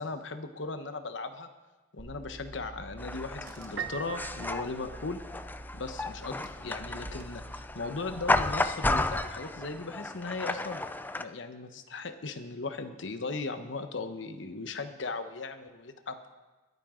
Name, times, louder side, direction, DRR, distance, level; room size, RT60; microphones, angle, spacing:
voice 1, 0.0-1.5 1.9-5.2 5.7-10.8 11.2-16.2, left 3 dB, 70° left, 8 dB, 1.1 m, -37 dB
Car / Engine, 2.0-8.6, right 1 dB, 50° right, 1.3 m, -47 dB
sound 1, 3.0-11.2, left 2 dB, 10° left, 0.4 m, -33 dB
Piano, 3.8-5.6, right 7 dB, 65° right, 0.9 m, -40 dB
21.5 x 9.2 x 3.8 m, 1.2 s
head